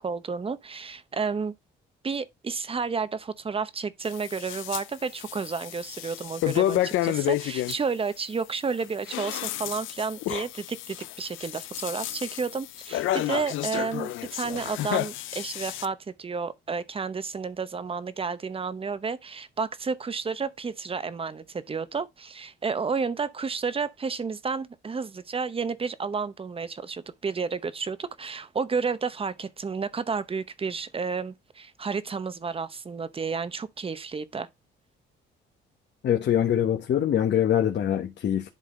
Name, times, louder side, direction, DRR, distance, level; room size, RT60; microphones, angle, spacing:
voice 1, 0.0-1.5 2.0-34.5, right 5 dB, 30° right, 0.8 m, -31 dB
sound 1, 4.0-4.8 5.2-7.8 8.8-15.9, left 14 dB, 80° left, 0.5 m, -30 dB
voice 2, 36.0-38.5, left 10 dB, 60° left, 1.1 m, -24 dB
10.5 x 3.8 x 3.8 m
cardioid pair, 90°, 20 cm